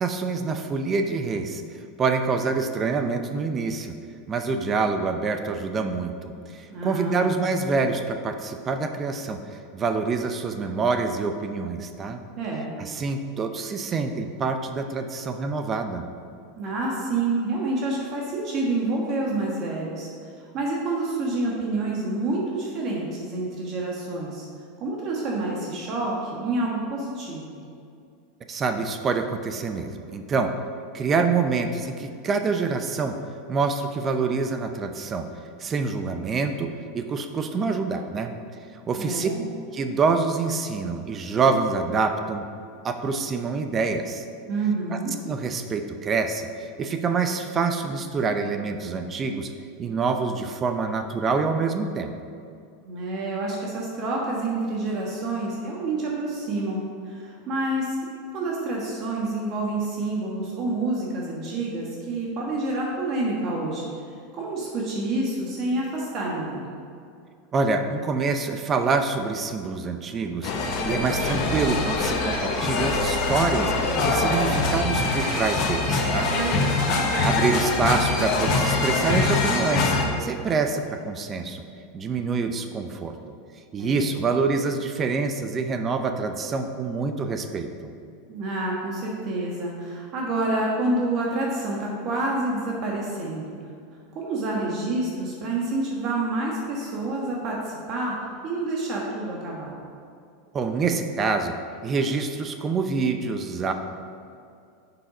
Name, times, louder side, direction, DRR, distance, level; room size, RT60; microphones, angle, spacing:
voice 1, 0.0-1.6 2.0-3.9 4.3-9.4 9.7-12.2 12.8-16.0 28.5-30.5 30.9-33.1 33.5-35.3 35.6-38.3 38.9-39.3 39.7-42.4 42.8-44.2 44.9-45.0 45.2-49.5 49.8-52.1 67.5-73.7 74.0-76.3 77.2-81.6 81.9-83.1 83.7-87.7 100.5-101.5 101.8-103.7, right 4 dB, 30° right, 7 dB, 0.6 m, -26 dB
voice 2, 6.7-7.4 12.3-12.7 16.6-20.1 20.4-24.5 24.8-27.6 38.9-39.4 44.5-45.1 52.8-58.0 58.3-63.9 64.3-66.7 76.3-77.0 83.8-84.1 88.3-93.5 94.1-98.2 98.4-99.8, right 2 dB, 45° right, -3 dB, 1.3 m, -28 dB
sound 1, 70.4-80.1, left 3 dB, 50° left, 1.2 m, -24 dB
6.8 x 5.6 x 4.9 m, 2.4 s
hypercardioid pair, 105°, 0 cm